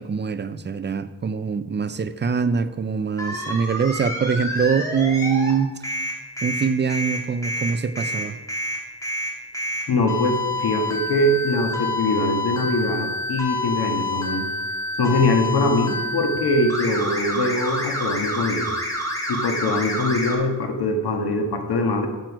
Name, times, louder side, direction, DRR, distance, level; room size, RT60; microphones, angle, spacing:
voice 1, 0.0-6.0 6.4-8.4, right 6 dB, 30° right, 12 dB, 0.4 m, -24 dB
sound 1, 3.2-5.5 5.8-20.4, left 1 dB, 10° left, 1.9 m, -28 dB
voice 2, 9.9-14.5 15.0-18.7 19.3-22.1, left 2 dB, 90° left, 3 dB, 1.5 m, -22 dB
9.0 x 7.7 x 6.1 m, 1.2 s
wide cardioid pair, 170°, 38 cm